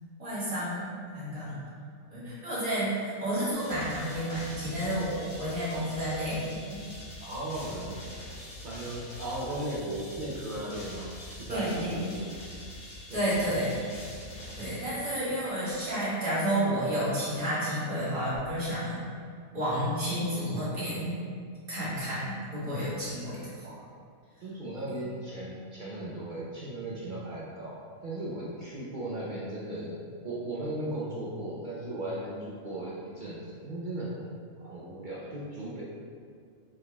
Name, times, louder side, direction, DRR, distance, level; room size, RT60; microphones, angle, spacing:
voice 1, 0.2-1.6 2.1-6.8 11.5-12.0 13.1-13.8 14.5-19.0 19.5-21.2 21.7-23.4 23.6-23.8, equal, 40° right, -11 dB, 1.7 m, -31 dB
sound 1, 3.6-15.5, left 1 dB, 65° left, 1.2 m, -44 dB
voice 2, 7.2-8.0 8.6-12.3 13.1-13.6 24.4-34.3 34.6-35.8, right 1 dB, 55° right, -6 dB, 0.5 m, -37 dB
5.3 x 3.6 x 2.2 m, 2.2 s
omnidirectional pair, 1.5 m